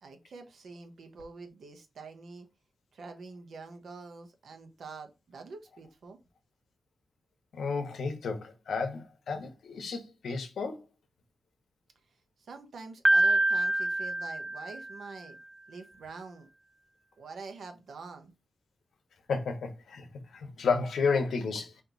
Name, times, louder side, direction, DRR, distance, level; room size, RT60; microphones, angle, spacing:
voice 1, 0.0-2.5 2.9-6.2 12.4-15.4 15.7-16.5 17.2-18.4, right 4 dB, 70° right, 1.0 m, -46 dB
voice 2, 7.5-10.9 19.3-21.8, left 4 dB, 80° left, 1.0 m, -32 dB
Piano, 13.1-15.1, right 1 dB, 10° right, 0.3 m, -26 dB
4.4 x 2.8 x 3.9 m
wide cardioid pair, 135°, 0 cm